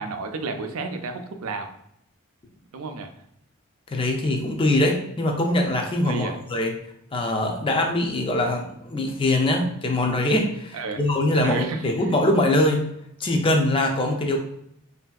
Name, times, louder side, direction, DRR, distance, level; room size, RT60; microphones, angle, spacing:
voice 1, 0.0-1.7 2.7-3.1 6.0-6.4 10.7-11.0 11.4-12.1, right 4 dB, 80° right, 6 dB, 0.4 m, -31 dB
voice 2, 3.9-6.7 7.1-12.8 13.2-14.4, left 1 dB, 25° left, 2 dB, 0.4 m, -23 dB
3.2 x 2.6 x 2.2 m, 0.75 s
head